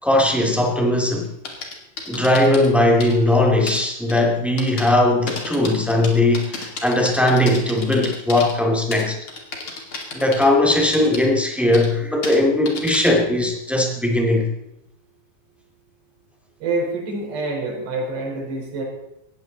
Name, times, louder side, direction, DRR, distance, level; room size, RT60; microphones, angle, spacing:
voice 1, 0.0-1.3 2.1-9.2 10.1-14.5, left 1 dB, ahead, 0 dB, 1.3 m, -19 dB
sound 1, 1.2-2.7 3.0-3.1 3.7-3.8 4.1-4.2 4.6-4.9 5.3-8.5 8.9-10.4 10.7-11.2 11.7-11.9 12.2-12.4 12.7-13.2, left 4 dB, 35° left, 2.6 m, -32 dB
voice 2, 16.6-18.8, right 2 dB, 75° right, -1 dB, 6.6 m, -26 dB
18.5 x 15.0 x 4.1 m, 0.83 s
omnidirectional pair, 4.8 m